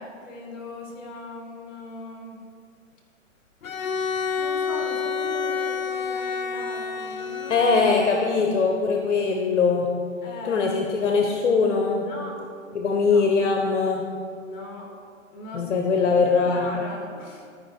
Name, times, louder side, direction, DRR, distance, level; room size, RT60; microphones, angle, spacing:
voice 1, 0.0-2.4 4.0-7.7 10.2-10.6 11.1-11.2 12.0-12.4 13.1-13.3 14.4-15.0 15.3-15.7 16.0-17.5, left 2 dB, 25° left, 0 dB, 2.2 m, -39 dB
Bowed string instrument, 3.6-8.6, left 5 dB, 85° left, 0.8 m, -29 dB
voice 2, 7.5-9.9 10.4-12.1 12.7-14.0 15.5-16.6, left 4 dB, 60° left, 2 dB, 1.1 m, -21 dB
13.0 x 5.3 x 4.6 m, 2.2 s
hypercardioid pair, 135°, 40 cm